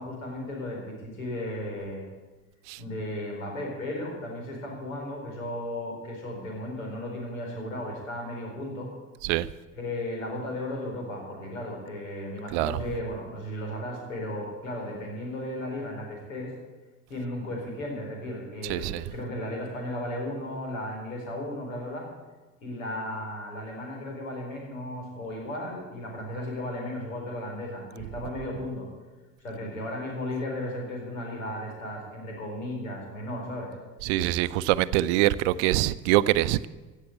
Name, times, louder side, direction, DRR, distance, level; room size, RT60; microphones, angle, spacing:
voice 1, 0.0-2.1 2.8-8.9 9.7-16.5 17.1-22.1 22.6-28.9 29.4-33.7, left 1 dB, 75° left, 4.4 m, -35 dB
voice 2, 18.6-19.0 34.0-36.7, right 15 dB, 55° right, 0.6 m, -24 dB
16.0 x 7.2 x 8.7 m
figure-of-eight pair, 60°, 40 cm